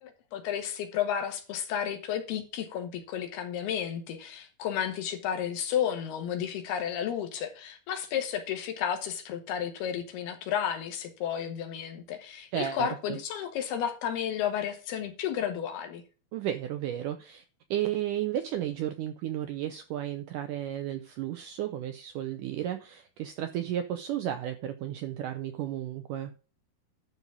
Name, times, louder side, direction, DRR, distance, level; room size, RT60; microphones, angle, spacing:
voice 1, 0.0-16.0, left 9 dB, 80° left, 3.5 m, -32 dB
voice 2, 12.5-13.2 16.3-17.4 17.7-26.3, right 11 dB, 90° right, 1.8 m, -33 dB
12.0 x 4.1 x 7.2 m
omnidirectional pair, 4.6 m